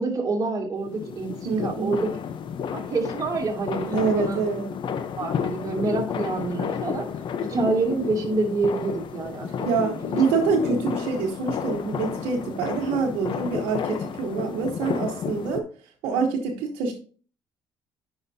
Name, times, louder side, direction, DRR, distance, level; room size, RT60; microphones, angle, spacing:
voice 1, 0.0-2.1 2.7-4.4 5.2-7.1 7.4-10.1, right 3 dB, 40° right, 0 dB, 2.8 m, -27 dB
sound 1, 0.8-15.6, left 7 dB, 60° left, 0.9 m, -31 dB
voice 2, 1.4-1.9 3.8-4.7 9.6-15.6 16.0-16.9, right 5 dB, 85° right, -1 dB, 1.1 m, -26 dB
9.7 x 5.7 x 2.8 m, 0.39 s
cardioid pair, 85°, 9 cm